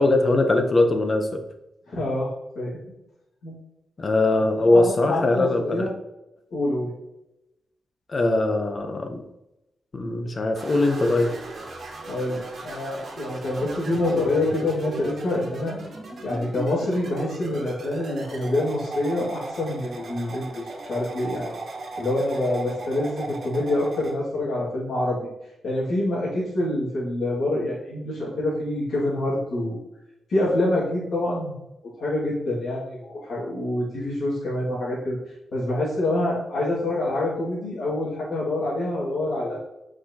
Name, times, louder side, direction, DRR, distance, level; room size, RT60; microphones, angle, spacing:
voice 1, 0.0-1.4 4.0-5.9 8.1-9.2 9.9-11.3, left 2 dB, 35° left, 5 dB, 0.9 m, -21 dB
voice 2, 1.9-2.8 3.4-3.6 4.7-5.9 6.5-6.9 12.1-15.8 16.2-21.6 22.0-25.2 25.6-29.8 30.3-31.5 32.0-35.2 35.5-39.6, left 1 dB, 75° left, -8 dB, 2.3 m, -26 dB
sound 1, 10.6-24.2, right 2 dB, 60° right, 1.4 m, -37 dB
7.9 x 4.9 x 3.0 m, 0.89 s
wide cardioid pair, 130°, 0 cm